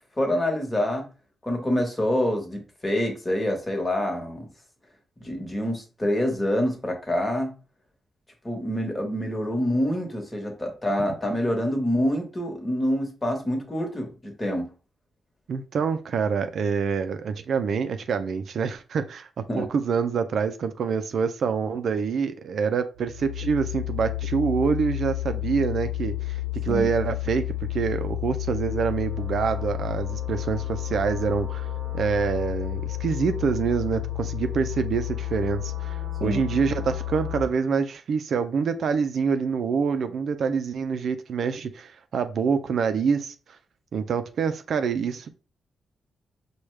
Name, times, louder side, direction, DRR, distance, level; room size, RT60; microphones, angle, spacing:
voice 1, 0.2-1.1 1.4-4.5 5.2-7.5 8.4-14.7 19.5-19.7 26.7-26.9 36.2-36.4, left 1 dB, 20° left, 1.3 m, -26 dB
voice 2, 15.5-19.3 19.5-31.7 31.9-43.3 43.9-45.3, right 6 dB, 65° right, 0.4 m, -26 dB
sound 1, 23.0-37.4, left 14 dB, 35° right, 0.9 m, -31 dB
4.7 x 2.3 x 3.2 m
cardioid pair, 90°, 0 cm